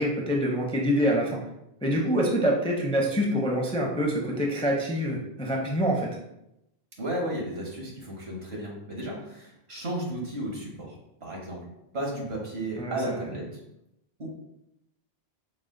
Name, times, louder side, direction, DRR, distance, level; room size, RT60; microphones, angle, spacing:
voice 1, 0.0-1.4 1.8-6.1 12.8-13.2, equal, 10° left, -1 dB, 0.4 m, -26 dB
voice 2, 7.0-11.6 11.9-13.5 14.2-14.3, right 1 dB, 75° right, -2 dB, 1.5 m, -34 dB
4.8 x 2.3 x 3.7 m, 0.83 s
omnidirectional pair, 1.1 m